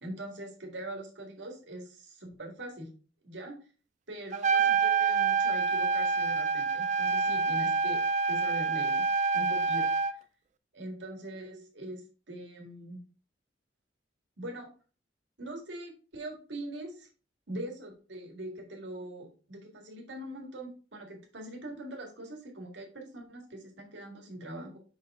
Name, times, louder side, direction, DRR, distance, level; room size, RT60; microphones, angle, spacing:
voice 1, 0.0-2.9 3.2-3.6 4.1-9.0 9.3-9.9 10.7-13.0 14.4-14.7 15.4-17.1 17.5-24.8, right 1 dB, 75° right, 1 dB, 1.8 m, -42 dB
Trumpet, 4.3-10.1, right 5 dB, 40° right, 0.4 m, -27 dB
5.7 x 5.4 x 3.6 m, 0.38 s
head